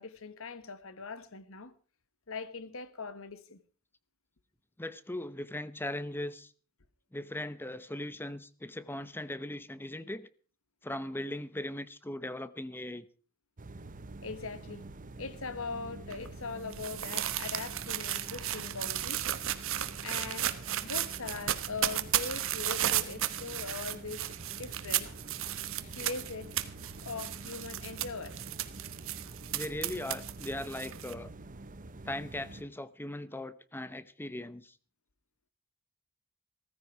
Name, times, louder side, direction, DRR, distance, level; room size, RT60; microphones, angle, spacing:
voice 1, 0.0-1.7 2.3-3.6 14.2-14.9 15.2-19.3 20.0-20.5 20.8-25.1 25.8-26.5 27.0-28.4, left 4 dB, 70° left, 1.4 m, -41 dB
voice 2, 4.8-6.5 7.1-10.3 10.8-13.1 29.5-31.3 32.0-34.8, left 1 dB, 10° left, 0.8 m, -39 dB
sound 1, 13.6-32.6, right 2 dB, 40° right, 0.9 m, -47 dB
sound 2, 16.1-31.1, right 12 dB, 65° right, 1.2 m, -34 dB
16.5 x 14.5 x 4.7 m
head